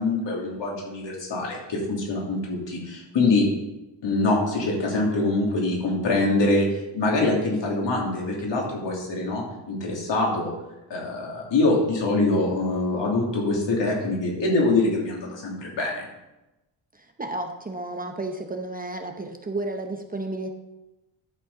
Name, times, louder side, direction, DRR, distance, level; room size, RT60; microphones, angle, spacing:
voice 1, 0.0-3.5 4.0-6.7 6.9-10.5 10.9-16.1, left 2 dB, 65° left, -2 dB, 3.1 m, -24 dB
voice 2, 16.9-20.5, right 2 dB, 20° right, 4 dB, 0.8 m, -32 dB
11.5 x 6.5 x 5.0 m, 1.0 s
cardioid pair, 115°, 47 cm